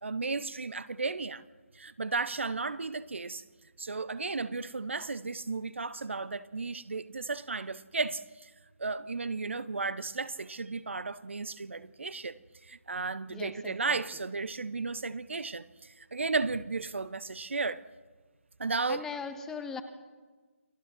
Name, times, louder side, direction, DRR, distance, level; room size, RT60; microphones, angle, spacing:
voice 1, 0.0-1.4 1.7-3.4 3.8-8.5 8.8-17.8 18.6-19.1, right 4 dB, 60° right, 1.0 m, -34 dB
voice 2, 13.3-14.0 18.9-19.8, left 5 dB, 5° left, 1.0 m, -39 dB
29.0 x 20.5 x 6.2 m
figure-of-eight pair, 150°, 8 cm